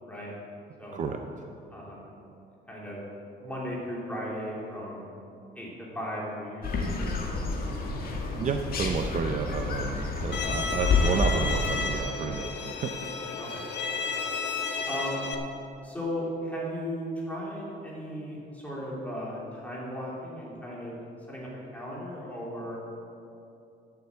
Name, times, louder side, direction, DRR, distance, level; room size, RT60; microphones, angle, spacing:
voice 1, 0.9-1.5 8.3-13.0, right 5 dB, 45° right, 5 dB, 0.6 m, -31 dB
voice 2, 1.7-2.1 2.7-3.0 3.4-5.0 5.5-7.3 13.4-13.6 14.5-15.3 15.8-21.0 21.3-22.8, equal, 10° left, -5 dB, 3.0 m, -36 dB
sound 1, 6.6-11.8, left 3 dB, 55° left, 1.6 m, -29 dB
Bowed string instrument, 10.3-15.3, left 4 dB, 75° left, 1.1 m, -32 dB
11.5 x 7.0 x 7.6 m, 2.7 s
cardioid pair, 155°, 18 cm